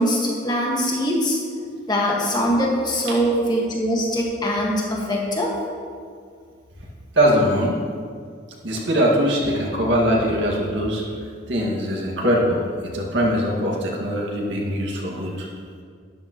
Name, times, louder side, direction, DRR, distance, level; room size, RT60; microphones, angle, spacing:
voice 1, 0.0-1.4 1.9-5.5, equal, 20° left, -2 dB, 1.7 m, -22 dB
voice 2, 7.1-7.8 8.6-11.0 11.5-12.6 12.9-15.5, equal, 70° right, -3 dB, 2.0 m, -21 dB
12.5 x 11.0 x 3.1 m, 2.1 s
head